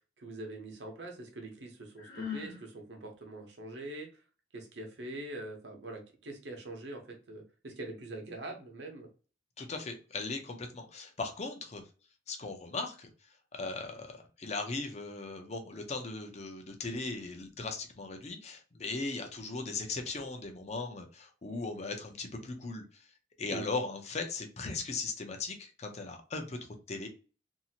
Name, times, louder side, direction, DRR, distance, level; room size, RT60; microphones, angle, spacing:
voice 1, 0.2-4.1 4.5-9.1 23.5-23.7, right 2 dB, 65° right, 2 dB, 0.9 m, -43 dB
Sigh, 2.0-2.6, left 7 dB, 60° left, 1.1 m, -39 dB
voice 2, 9.6-11.8 12.3-13.1 13.5-23.0 23.4-26.6 26.9-27.1, left 3 dB, 40° left, 5 dB, 0.5 m, -38 dB
2.7 x 2.5 x 2.8 m, 0.35 s
head